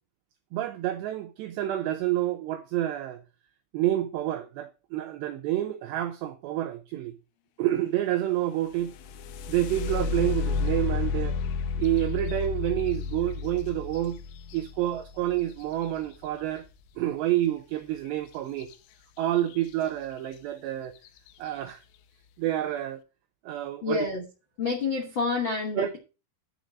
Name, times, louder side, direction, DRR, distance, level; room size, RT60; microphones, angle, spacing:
voice 1, 0.5-3.2 3.7-7.1 7.6-8.9 9.5-11.4 11.8-14.2 14.5-16.7 17.0-18.7 19.2-20.9 21.4-21.8 22.4-23.0 23.5-24.1 25.8-26.0, right 13 dB, 90° right, 2.4 m, -28 dB
sound 1, 8.7-16.5 18.6-18.7 19.2-19.7 20.3-20.4 21.0-21.3, left 5 dB, 80° left, 3.5 m, -32 dB
voice 2, 23.8-24.2 24.6-26.0, left 4 dB, 50° left, 1.5 m, -28 dB
11.5 x 5.2 x 7.3 m
omnidirectional pair, 5.8 m